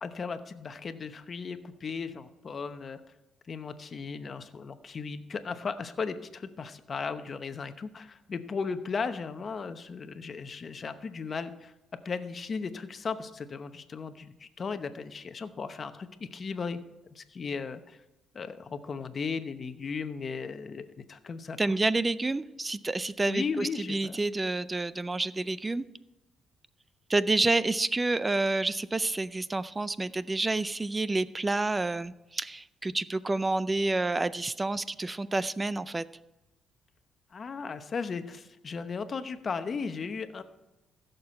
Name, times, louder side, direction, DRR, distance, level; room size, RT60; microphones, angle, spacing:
voice 1, 0.0-3.0 3.5-11.7 12.0-16.8 17.1-18.0 18.3-21.8 23.3-24.2 37.3-40.4, left 5 dB, 45° left, 10 dB, 0.9 m, -36 dB
voice 2, 21.6-25.9 27.1-36.0, right 2 dB, 20° right, 17 dB, 0.4 m, -29 dB
15.0 x 6.8 x 4.4 m, 0.98 s
cardioid pair, 90°, 0 cm